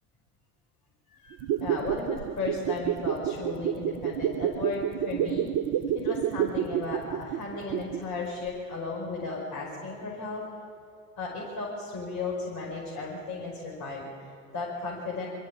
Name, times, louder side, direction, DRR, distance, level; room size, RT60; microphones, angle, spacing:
voice 1, 1.1-5.5 5.9-10.4 11.2-15.3, left 3 dB, 45° left, -2 dB, 5.6 m, -35 dB
sound 1, 1.3-8.2 8.5-8.6, right 10 dB, 50° right, 0.9 m, -29 dB
26.5 x 14.5 x 8.8 m, 2.6 s
hypercardioid pair, 65°, 42 cm